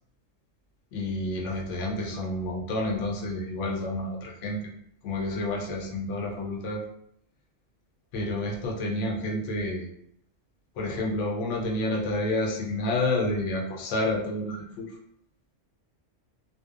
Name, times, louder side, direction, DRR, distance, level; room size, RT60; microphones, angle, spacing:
voice 1, 0.9-4.7 5.0-6.8 8.1-9.9 10.8-15.0, left 1 dB, 75° left, 0 dB, 0.9 m, -29 dB
2.6 x 2.1 x 2.3 m, 0.71 s
omnidirectional pair, 1.3 m